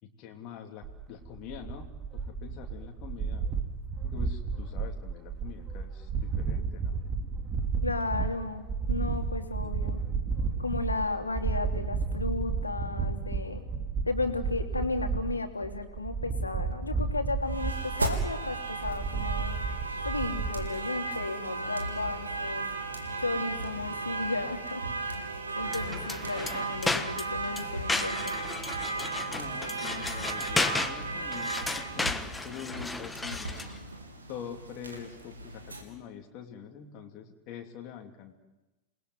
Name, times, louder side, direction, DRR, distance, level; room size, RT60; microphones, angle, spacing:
voice 1, 0.0-3.5 4.0-7.0 29.3-33.8 34.3-38.3, left 8 dB, 40° left, 2 dB, 2.9 m, -45 dB
sound 1, 0.8-20.7, right 5 dB, 25° right, 3.1 m, -32 dB
voice 2, 7.8-10.0 10.6-13.6 14.0-19.6 20.0-22.7 23.2-24.8 25.6-28.4, left 3 dB, 80° left, 4 dB, 3.0 m, -34 dB
sound 2, 17.5-35.8, right 3 dB, 75° right, 3.7 m, -36 dB
sound 3, 25.6-33.8, left 3 dB, 10° left, 1.3 m, -34 dB
28.5 x 20.5 x 9.6 m, 1.1 s
figure-of-eight pair, 90°, 0 cm